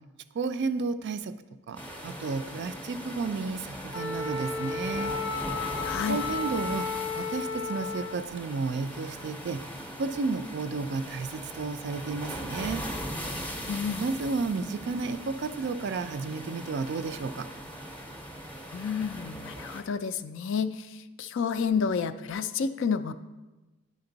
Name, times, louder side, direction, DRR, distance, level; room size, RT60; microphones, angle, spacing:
voice 1, 0.4-1.3 1.7-5.1 6.1-6.9 7.2-9.6 10.0-12.8 14.0-17.5, right 4 dB, 50° right, 12 dB, 0.3 m, -32 dB
sound 1, 1.8-19.8, equal, 5° left, 0.6 m, -40 dB
Wind instrument woodwind instrument, 3.9-8.2, left 4 dB, 90° left, 0.9 m, -33 dB
voice 2, 5.8-6.2 13.7-14.0 18.7-20.9 21.2-23.1, left 6 dB, 55° left, 12 dB, 0.3 m, -30 dB
9.5 x 5.2 x 3.9 m, 1.1 s
head